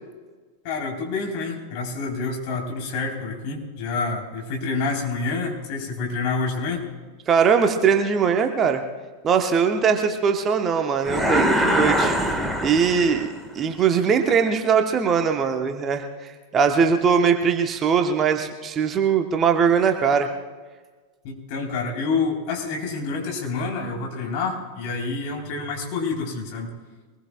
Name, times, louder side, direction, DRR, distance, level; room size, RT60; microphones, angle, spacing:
voice 1, 0.6-6.9 21.2-26.7, left 4 dB, 45° left, 0 dB, 3.9 m, -28 dB
voice 2, 7.3-8.8 9.2-12.1 12.6-20.3, right 6 dB, 25° right, 5 dB, 1.2 m, -21 dB
sound 1, 11.0-13.4, equal, ahead, 1.7 m, -22 dB
24.0 x 20.5 x 2.4 m, 1.4 s
figure-of-eight pair, 90°, 0 cm